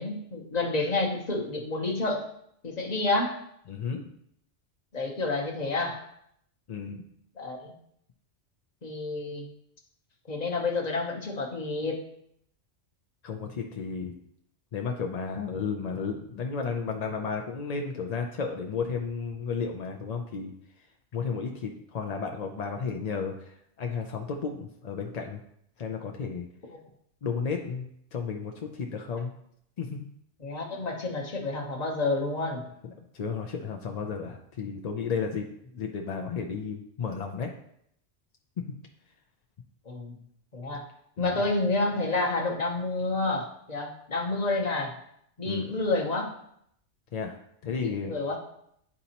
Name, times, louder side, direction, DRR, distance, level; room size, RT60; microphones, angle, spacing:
voice 1, 0.0-2.3 2.6-3.4 4.9-6.0 7.4-7.7 8.8-9.5 10.3-12.0 26.7-26.8 30.4-32.6 39.9-40.1 40.5-40.8 41.2-44.9 45.4-46.3 47.8-48.4, left 2 dB, 35° left, 1 dB, 1.0 m, -29 dB
voice 2, 3.7-4.0 6.7-7.0 13.2-14.1 14.7-20.5 21.1-25.4 25.8-26.5 27.2-29.3 29.8-30.1 33.1-35.5 35.8-37.5 41.2-41.5 45.4-45.7 47.1-48.1, left 5 dB, 55° left, 3 dB, 0.4 m, -33 dB
9.5 x 4.0 x 2.9 m, 0.72 s
omnidirectional pair, 1.2 m